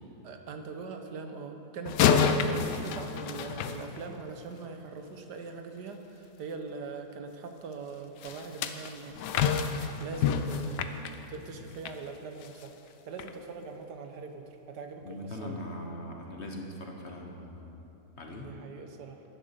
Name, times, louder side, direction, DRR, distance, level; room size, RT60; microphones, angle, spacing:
voice 1, 0.2-11.0 11.3-15.6 18.3-19.2, right 4 dB, 75° right, 6 dB, 1.4 m, -42 dB
sound 1, 1.9-4.4 8.2-12.0 12.4-12.6 13.2-13.3, left 7 dB, 80° left, 1.3 m, -29 dB
voice 2, 15.0-17.7 18.2-18.5, left 1 dB, 45° left, 1 dB, 1.4 m, -41 dB
11.0 x 10.0 x 6.7 m, 2.9 s
omnidirectional pair, 1.8 m